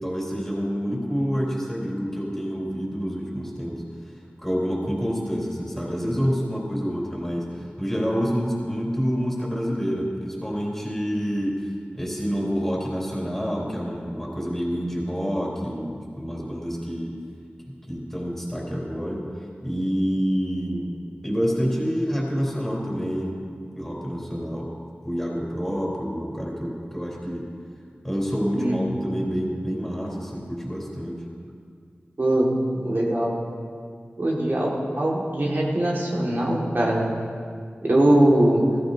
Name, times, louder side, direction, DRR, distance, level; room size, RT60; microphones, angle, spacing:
voice 1, 0.0-3.8 4.4-11.6 11.9-17.2 17.9-19.3 19.6-20.9 21.2-23.4 23.8-24.7 25.0-27.5 28.0-31.2, equal, 5° left, -3 dB, 3.7 m, -27 dB
voice 2, 32.2-32.5 32.8-33.3 34.2-37.1 37.9-38.6, right 1 dB, 55° right, -4 dB, 1.9 m, -21 dB
14.5 x 14.5 x 2.7 m, 2.2 s
wide cardioid pair, 45°, 4 cm